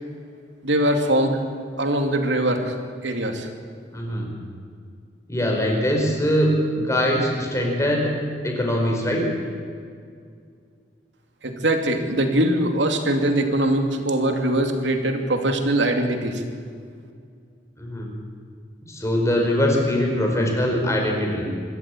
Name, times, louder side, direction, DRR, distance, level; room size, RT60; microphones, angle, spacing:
voice 1, 0.6-1.4 1.8-2.8 3.0-3.5 11.4-16.4, right 1 dB, 80° right, 5 dB, 2.7 m, -22 dB
voice 2, 3.9-4.3 5.3-8.1 8.4-9.2 17.8-18.1 18.9-21.4, equal, 15° left, 0 dB, 5.0 m, -22 dB
25.5 x 13.5 x 8.7 m, 2.2 s
head